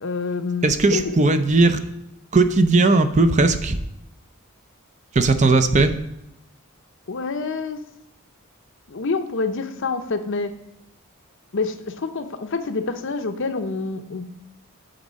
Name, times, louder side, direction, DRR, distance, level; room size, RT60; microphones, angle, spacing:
voice 1, 0.0-1.2 7.1-7.8 8.9-10.5 11.5-14.2, left 4 dB, 60° left, 8 dB, 0.7 m, -27 dB
voice 2, 0.6-1.8 2.3-3.8 5.1-5.9, right 3 dB, 35° right, 9 dB, 0.6 m, -17 dB
8.9 x 4.1 x 6.2 m, 0.80 s
head